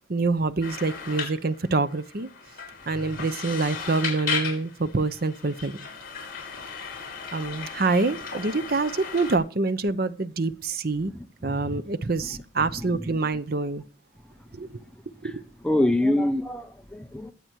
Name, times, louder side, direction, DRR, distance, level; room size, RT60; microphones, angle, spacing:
voice 1, 0.1-2.3 2.9-5.8 7.3-11.1 11.4-13.8 14.5-14.7 15.2-15.4, right 3 dB, 50° right, 0.7 m, -26 dB
sound 1, 0.6-9.4, left 6 dB, 45° left, 5.2 m, -36 dB
voice 2, 11.1-11.8 12.8-13.0 15.2-15.3 15.6-17.3, left 1 dB, 5° left, 0.6 m, -26 dB
21.0 x 7.9 x 4.6 m
head